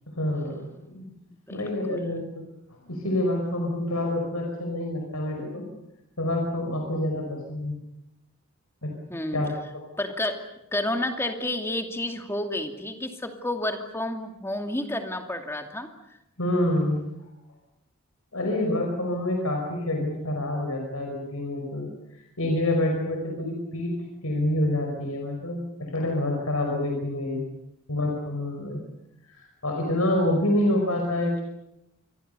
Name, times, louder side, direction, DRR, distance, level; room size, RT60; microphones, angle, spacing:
voice 1, 0.1-1.1 1.5-2.4 2.9-5.6 6.2-7.7 8.8-8.9 9.3-9.8 16.4-17.0 18.3-21.9 22.4-23.9 24.2-27.4 27.9-28.8 29.3-31.4, left 1 dB, 75° left, 1 dB, 5.4 m, -27 dB
voice 2, 1.5-2.1 9.1-9.4 10.0-10.4 10.7-15.9, left 1 dB, 10° left, 5 dB, 2.5 m, -30 dB
27.5 x 23.5 x 6.9 m, 0.86 s
head